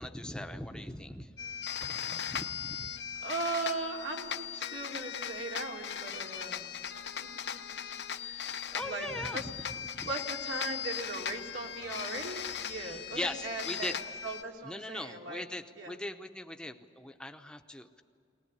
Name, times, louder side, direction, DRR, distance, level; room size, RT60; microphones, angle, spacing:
voice 1, 0.0-1.3 2.3-2.9 8.4-9.6 10.0-10.1 12.8-14.0 14.6-18.0, left 1 dB, 5° left, 6 dB, 0.8 m, -40 dB
sound 1, 1.4-14.4, left 8 dB, 65° left, 0.8 m, -38 dB
voice 2, 1.8-2.2 3.2-6.8 7.2-7.6 8.2-9.1 9.3-9.4 10.0-14.0 14.2-15.5 15.7-15.9, right 2 dB, 90° right, 0 dB, 3.1 m, -39 dB
21.0 x 19.5 x 9.7 m, 2.4 s
head